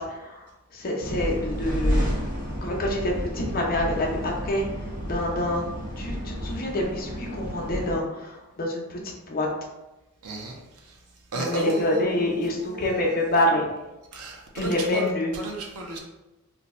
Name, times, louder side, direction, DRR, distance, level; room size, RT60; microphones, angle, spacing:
voice 1, 0.0-2.1 2.6-4.7 5.1-5.7 6.0-9.5 11.3-13.6 14.5-15.3, left 1 dB, 40° left, -1 dB, 0.6 m, -27 dB
sound 1, 1.0-8.0, equal, 40° right, 1.0 m, -30 dB
voice 2, 10.2-11.0 11.3-13.4 14.1-16.0, right 2 dB, 80° right, 1 dB, 0.7 m, -35 dB
2.6 x 2.2 x 4.1 m, 1.0 s
head